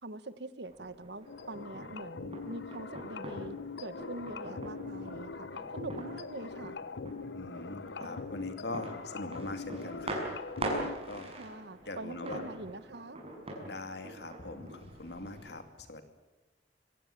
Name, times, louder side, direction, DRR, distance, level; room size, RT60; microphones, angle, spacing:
voice 1, 0.0-5.5 5.7-6.8 11.4-13.2, right 2 dB, 70° right, 14 dB, 1.3 m, -44 dB
sound 1, 0.7-15.6, right 1 dB, 35° right, 6.4 m, -43 dB
sound 2, 1.3-11.0, left 4 dB, 85° left, 0.8 m, -42 dB
voice 2, 7.3-10.2 11.0-11.3 11.9-12.4 13.7-16.1, left 2 dB, 70° left, 8 dB, 2.6 m, -42 dB
26.0 x 17.0 x 8.6 m, 1.1 s
head